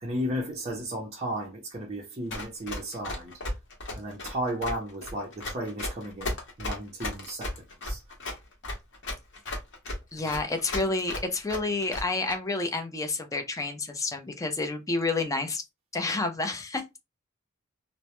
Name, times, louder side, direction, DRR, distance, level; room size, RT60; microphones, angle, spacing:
voice 1, 0.0-3.4 4.0-7.5 7.8-8.0 10.1-10.2, equal, 30° right, 0.6 m, -34 dB
Run, 2.3-12.3, left 1 dB, 60° left, 0.9 m, -35 dB
voice 2, 10.1-15.6 15.9-16.8, left 3 dB, 15° left, 0.4 m, -29 dB
2.1 x 2.0 x 2.9 m
head